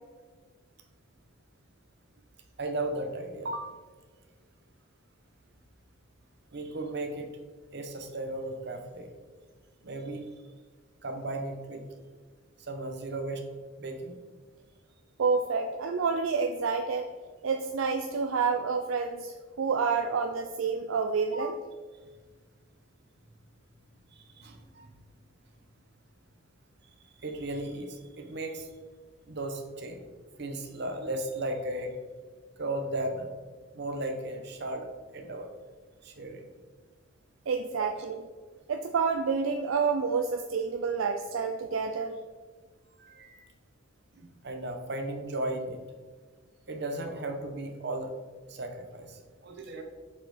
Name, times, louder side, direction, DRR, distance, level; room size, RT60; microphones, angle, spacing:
voice 1, 2.6-3.7 6.5-7.3 7.7-9.1 9.8-10.2 11.0-11.8 12.6-13.4 13.8-14.1 21.3-21.5 24.1-24.9 27.2-28.7 29.3-30.1 30.4-31.9 32.6-33.3 33.7-34.9 35.1-35.5 36.0-36.5 43.0-43.5 44.2-45.8 46.7-48.1 48.5-49.8, right 1 dB, 55° right, 5 dB, 0.9 m, -35 dB
voice 2, 15.2-17.1 17.4-21.5 37.5-38.2 38.7-42.2, right 5 dB, 75° right, 5 dB, 0.4 m, -28 dB
7.3 x 4.4 x 4.0 m, 1.5 s
head